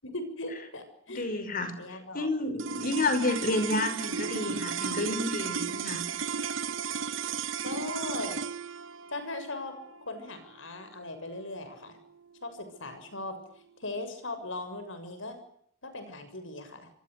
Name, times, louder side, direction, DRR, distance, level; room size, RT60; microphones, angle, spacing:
voice 1, 0.0-1.2 1.8-2.3 7.6-8.4 9.1-9.8 10.0-12.0 12.4-13.4 13.8-15.4 15.8-16.9, left 2 dB, 75° left, 10 dB, 7.2 m, -38 dB
voice 2, 1.1-1.7 2.1-6.0, left 2 dB, 45° left, 10 dB, 5.4 m, -30 dB
sound 1, 2.6-13.0, right 6 dB, 75° right, 1.0 m, -35 dB
27.0 x 27.0 x 6.7 m, 0.67 s
head